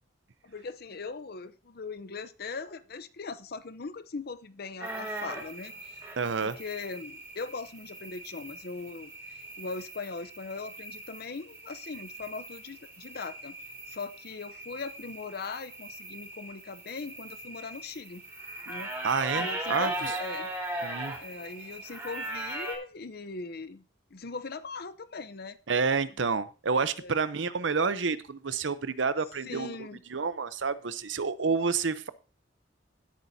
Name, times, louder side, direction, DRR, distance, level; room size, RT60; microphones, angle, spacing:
voice 1, 0.4-6.0 6.4-13.6 13.9-18.2 18.7-18.9 19.3-20.5 21.2-23.8 24.1-25.6 27.0-27.2 29.4-30.0, left 4 dB, 55° left, 0.8 m, -40 dB
sound 1, 4.8-22.8, right 1 dB, 15° right, 4.0 m, -39 dB
voice 2, 6.2-6.5 19.0-20.1 20.8-21.1 25.7-32.1, right 5 dB, 75° right, 0.7 m, -29 dB
17.0 x 8.3 x 2.8 m
head